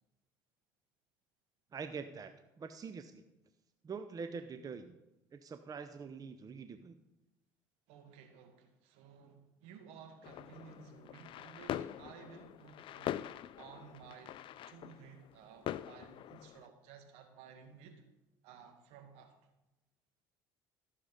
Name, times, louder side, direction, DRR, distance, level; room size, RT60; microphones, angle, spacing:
voice 1, 1.7-2.3 2.6-3.2 3.8-5.0 5.3-7.0, right 5 dB, 30° right, 9 dB, 0.8 m, -44 dB
voice 2, 7.9-13.2 13.6-14.4 14.7-18.0 18.4-19.5, right 7 dB, 65° right, 5 dB, 1.8 m, -55 dB
sound 1, 10.2-16.7, left 12 dB, 50° left, 0.4 m, -43 dB
14.0 x 6.7 x 5.4 m, 0.96 s
hypercardioid pair, 60°, 11 cm